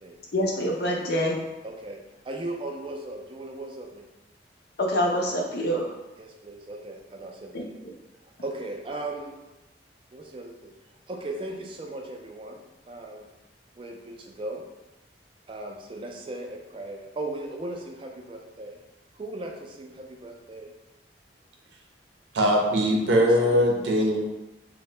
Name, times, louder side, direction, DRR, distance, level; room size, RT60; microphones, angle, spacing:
voice 1, 0.3-1.4 4.8-5.9 7.5-7.6, equal, 60° left, -1 dB, 0.5 m, -25 dB
voice 2, 1.6-4.0 6.2-7.6 8.4-9.4 10.1-10.5 11.1-13.3 13.8-14.6 15.5-18.8 19.1-20.7 23.1-23.6, right 2 dB, 30° right, 1 dB, 0.3 m, -37 dB
voice 3, 22.3-24.2, equal, 85° right, 0 dB, 0.5 m, -21 dB
2.7 x 2.1 x 3.2 m, 1.0 s
head